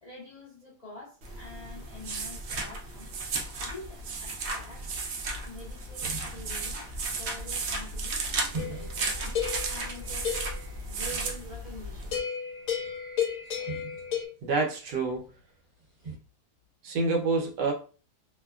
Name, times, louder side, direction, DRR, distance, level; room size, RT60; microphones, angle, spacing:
voice 1, 0.0-3.2 3.6-4.9 5.4-6.8 7.2-12.2, left 2 dB, 80° left, 0.3 m, -46 dB
sound 1, 1.2-12.2, right 3 dB, 65° right, 0.6 m, -34 dB
sound 2, 6.0-16.2, right 4 dB, 45° right, 1.7 m, -46 dB
sound 3, 8.6-10.7 12.1-14.3, left 8 dB, 60° left, 1.1 m, -33 dB
voice 2, 14.4-15.3 16.8-17.7, right 3 dB, 85° right, 1.4 m, -27 dB
3.1 x 2.1 x 2.3 m
omnidirectional pair, 1.7 m